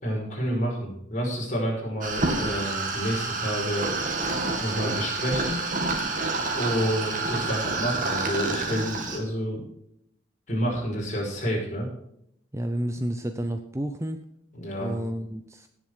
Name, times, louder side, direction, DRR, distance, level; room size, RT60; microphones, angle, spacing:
voice 1, 0.0-3.9 4.6-5.6 6.5-9.6 10.5-11.9 14.5-15.0, equal, 40° left, -1 dB, 5.4 m, -29 dB
sound 1, 2.0-9.2, right 3 dB, 40° right, 2.4 m, -28 dB
voice 2, 12.5-14.2 14.8-15.7, right 1 dB, 15° right, 7 dB, 0.7 m, -30 dB
17.5 x 7.5 x 4.8 m, 0.74 s
head